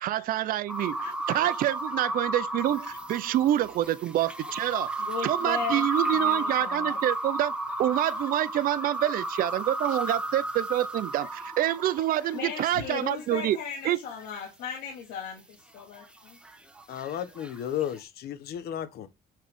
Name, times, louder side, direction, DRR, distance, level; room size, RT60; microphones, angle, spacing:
voice 1, 0.0-7.5 7.8-13.6 13.8-14.0, right 13 dB, 60° right, 0.5 m, -27 dB
sound 1, 0.7-12.4 15.8-18.0, right 1 dB, 5° right, 0.9 m, -33 dB
voice 2, 5.0-5.9 6.1-7.0 12.3-16.4, left 6 dB, 90° left, 2.0 m, -37 dB
voice 3, 16.9-19.1, left 10 dB, 70° left, 1.1 m, -34 dB
7.3 x 3.8 x 3.5 m
cardioid pair, 110°, 17 cm